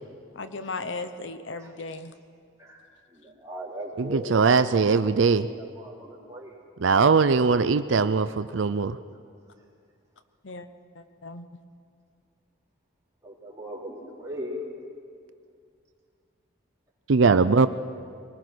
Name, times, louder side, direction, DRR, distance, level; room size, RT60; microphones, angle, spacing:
voice 1, 0.3-2.1 10.4-10.7 11.0-11.5, left 3 dB, 70° left, 10 dB, 0.9 m, -36 dB
voice 2, 2.6-4.9 5.6-6.6 13.2-14.7, equal, 15° right, -5 dB, 3.7 m, -38 dB
voice 3, 4.0-5.5 6.8-9.0 17.1-17.7, right 4 dB, 70° right, 12 dB, 0.5 m, -20 dB
23.0 x 19.5 x 6.2 m, 2.2 s
head